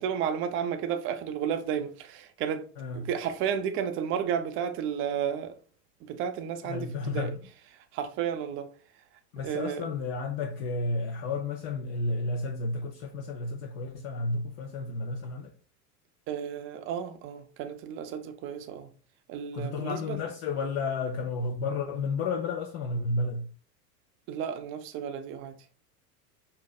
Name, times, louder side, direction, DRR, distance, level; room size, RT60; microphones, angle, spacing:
voice 1, 0.0-2.6 2.9-5.5 6.1-7.3 7.9-8.7 9.4-9.9 16.3-18.9 19.3-20.2 24.3-25.6, right 8 dB, 25° right, 0.5 m, -32 dB
voice 2, 2.8-3.1 6.6-7.4 9.3-15.5 19.5-23.5, left 3 dB, 40° left, 0.5 m, -32 dB
5.3 x 2.6 x 2.3 m
figure-of-eight pair, 85°, 48 cm